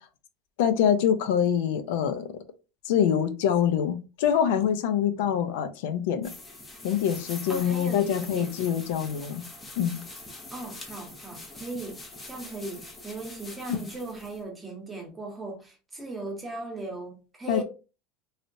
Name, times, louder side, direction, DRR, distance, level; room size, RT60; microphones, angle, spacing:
voice 1, 0.6-2.2 2.9-6.3 6.8-9.4 9.8-10.0 17.5-17.6, left 8 dB, 65° left, 0.6 m, -25 dB
sound 1, 6.2-14.4, left 2 dB, 15° left, 0.7 m, -44 dB
voice 2, 7.5-8.5 10.5-17.6, right 2 dB, 10° right, 0.9 m, -38 dB
3.2 x 2.8 x 2.6 m
supercardioid pair, 170°, 0 cm